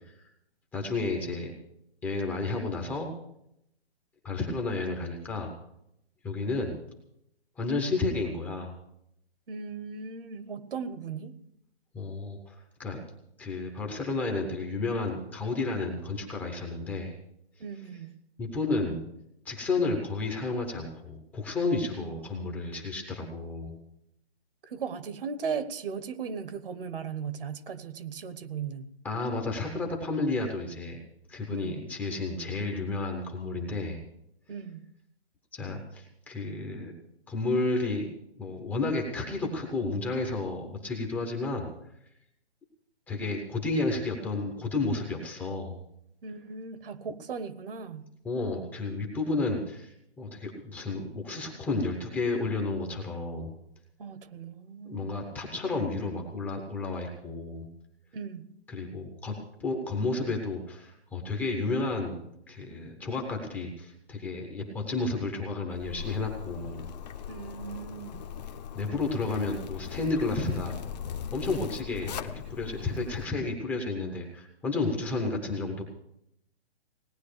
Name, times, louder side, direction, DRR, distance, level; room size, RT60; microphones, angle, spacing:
voice 1, 0.7-1.5 2.0-3.1 4.2-5.5 6.2-6.8 7.6-8.8 11.9-13.0 13.4-17.2 18.4-19.0 19.4-23.8 29.0-31.0 31.3-34.0 35.5-36.9 37.3-38.1 38.4-41.7 43.1-45.8 48.2-53.5 54.8-57.7 58.7-59.3 59.6-62.2 62.5-66.8 68.7-70.7 71.3-75.8, left 3 dB, 5° left, 1 dB, 0.8 m, -31 dB
voice 2, 9.5-11.4 17.6-18.2 22.0-22.8 24.6-28.9 31.5-31.9 34.5-34.9 46.2-48.1 54.0-55.1 58.1-58.5 67.3-68.2, right 6 dB, 55° right, 12 dB, 1.3 m, -37 dB
Zipper (clothing), 65.7-73.2, left 8 dB, 40° left, 0.9 m, -39 dB
18.0 x 9.5 x 6.7 m, 0.77 s
hypercardioid pair, 165°, 33 cm